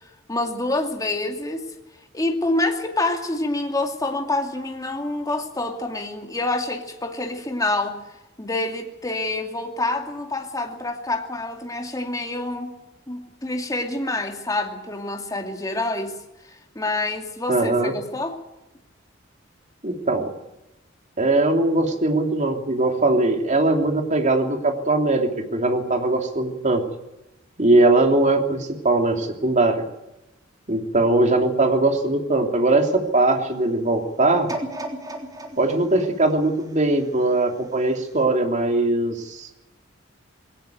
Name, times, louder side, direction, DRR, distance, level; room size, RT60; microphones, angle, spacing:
voice 1, 0.3-1.6 2.1-8.0 8.4-12.7 13.1-16.2 16.5-18.4, left 2 dB, 20° left, 3 dB, 2.5 m, -27 dB
voice 2, 17.5-17.9 19.8-20.3 21.2-26.8 27.6-29.8 30.7-34.5 35.6-39.5, right 2 dB, 40° right, 4 dB, 3.0 m, -20 dB
sound 1, 34.5-37.6 38.1-38.2, right 1 dB, 20° right, 3.5 m, -35 dB
21.0 x 17.5 x 9.2 m, 0.92 s
head